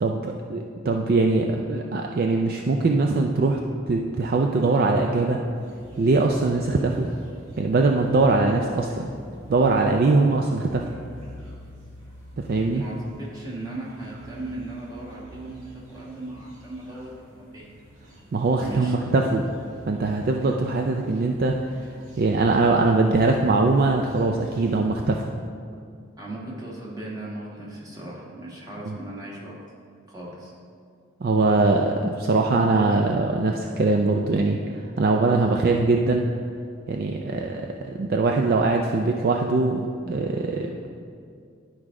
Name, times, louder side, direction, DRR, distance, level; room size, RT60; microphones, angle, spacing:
voice 1, 0.0-3.6 3.9-5.4 6.0-7.1 7.6-9.1 9.5-10.8 12.4-12.8 18.3-19.5 19.9-21.5 22.2-25.2 28.9-29.0 31.2-36.3 36.9-40.9, right 3 dB, 45° right, 2 dB, 0.4 m, -22 dB
sound 1, 5.5-24.9, equal, 85° right, 1.7 m, -47 dB
voice 2, 12.7-17.7 18.6-18.9 26.2-29.6 30.1-30.5, right 2 dB, 20° right, -5 dB, 1.4 m, -37 dB
11.0 x 4.8 x 3.7 m, 2.3 s
head